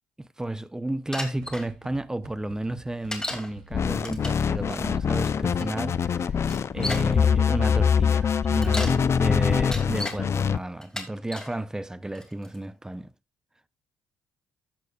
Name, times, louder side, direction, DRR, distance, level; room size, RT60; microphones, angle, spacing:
voice 1, 0.2-13.1, right 1 dB, 10° right, 0.8 m, -33 dB
Bicycle, 1.1-1.7 3.1-3.5 4.0-4.5 5.6-5.7 6.4-7.1 8.4-9.0 9.5-10.2 10.8-11.5 12.2-12.6, left 1 dB, 10° left, 2.7 m, -34 dB
sound 1, 1.4-6.0, right 7 dB, 90° right, 1.7 m, -51 dB
sound 2, 3.7-10.6, left 7 dB, 40° left, 0.6 m, -24 dB
13.0 x 8.1 x 2.5 m
supercardioid pair, 75°, 7 cm